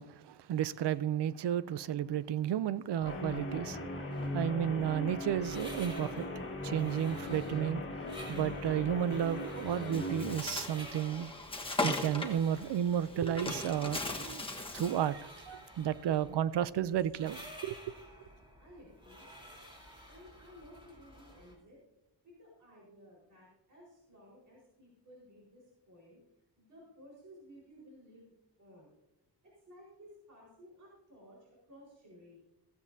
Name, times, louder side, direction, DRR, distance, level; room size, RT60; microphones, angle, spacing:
voice 1, 0.0-3.8 4.3-6.3 6.6-7.8 8.3-11.3 11.8-17.7, right 10 dB, 70° right, 0.6 m, -32 dB
Guitar, 3.0-10.4, left 1 dB, 30° left, 2.0 m, -39 dB
sound 1, 4.1-21.5, equal, 10° right, 3.7 m, -52 dB
Bird, 9.9-15.0, left 2 dB, 15° left, 1.3 m, -38 dB
voice 2, 18.6-19.3 20.1-21.8 22.2-26.2 26.6-28.9 29.4-32.4, equal, 45° right, 4.5 m, -56 dB
15.5 x 15.0 x 2.7 m
wide cardioid pair, 145°, 42 cm